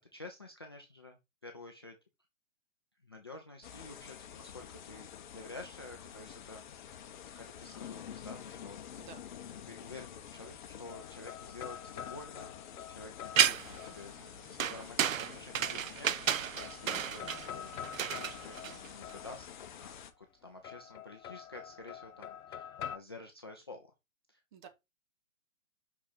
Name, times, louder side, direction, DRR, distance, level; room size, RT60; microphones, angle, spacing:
voice 1, 0.1-2.0 3.0-6.6 7.3-8.8 9.4-17.7 18.1-19.5 19.8-23.9 24.3-24.7, left 2 dB, 20° left, 0.4 m, -50 dB
sound 1, 3.6-20.1, left 9 dB, 35° left, 0.9 m, -49 dB
sound 2, 10.5-14.4 15.6-16.3 16.6-19.8 20.6-23.0, left 9 dB, 85° left, 0.6 m, -47 dB
sound 3, 13.4-13.9 14.6-19.1, right 9 dB, 70° right, 0.8 m, -31 dB
voice 2, 17.2-17.5 24.5-24.7, right 8 dB, 35° right, 1.4 m, -52 dB
5.8 x 5.7 x 4.0 m
hypercardioid pair, 150°, 41 cm